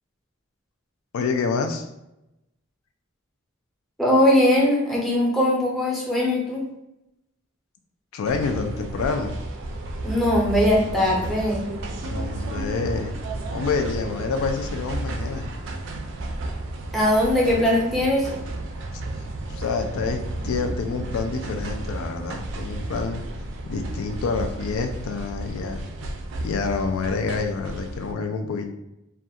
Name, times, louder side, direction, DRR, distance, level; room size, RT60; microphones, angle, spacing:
voice 1, 1.1-1.9 8.1-9.4 12.0-13.2 13.5-15.6 18.9-19.0 19.5-23.2 23.7-25.9 26.4-28.7, left 4 dB, 85° left, 5 dB, 0.3 m, -27 dB
voice 2, 4.0-6.7 10.0-11.7 16.9-18.3, left 1 dB, ahead, -4 dB, 0.6 m, -20 dB
sound 1, 8.2-28.1, right 2 dB, 60° right, 0.3 m, -32 dB
2.3 x 2.3 x 2.7 m, 0.89 s
head